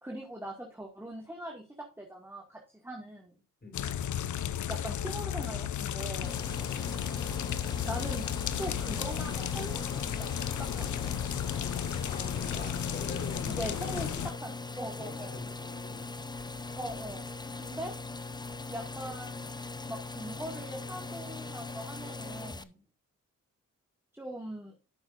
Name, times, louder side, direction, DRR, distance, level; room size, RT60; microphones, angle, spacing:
voice 1, 0.0-3.4 4.7-6.3 7.9-8.2 8.6-11.1 13.4-14.1 14.4-15.4 16.8-17.3 17.6-17.9 18.7-19.5 19.9-22.8 24.1-24.7, right 1 dB, 5° right, 0 dB, 2.1 m, -41 dB
voice 2, 3.6-4.0 12.0-14.2 15.0-16.2, left 2 dB, 30° left, 4 dB, 3.9 m, -45 dB
sound 1, 3.7-14.3, left 10 dB, 65° left, 0.7 m, -34 dB
sound 2, 6.2-22.6, left 3 dB, 15° left, 0.7 m, -40 dB
12.5 x 6.1 x 2.5 m, 0.35 s
cardioid pair, 60°, 32 cm